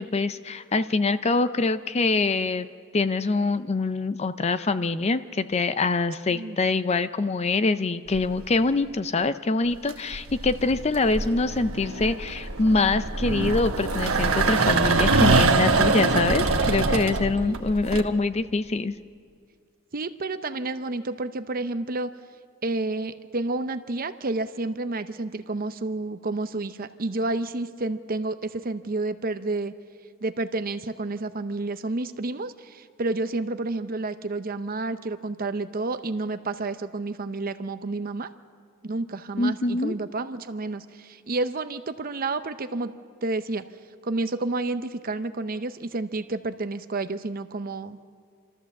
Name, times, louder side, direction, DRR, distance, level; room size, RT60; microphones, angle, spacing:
voice 1, 0.0-2.7 2.9-18.9 39.4-39.9, left 3 dB, 30° left, 12 dB, 0.5 m, -24 dB
sound 1, 8.1-8.6 9.7-18.0, right 3 dB, 80° right, 1.1 m, -24 dB
voice 2, 19.9-22.1 22.6-29.7 30.2-38.3 38.8-42.9 43.2-43.6 44.0-48.0, right 2 dB, 40° right, 11 dB, 0.7 m, -30 dB
26.5 x 13.5 x 7.3 m, 2.2 s
head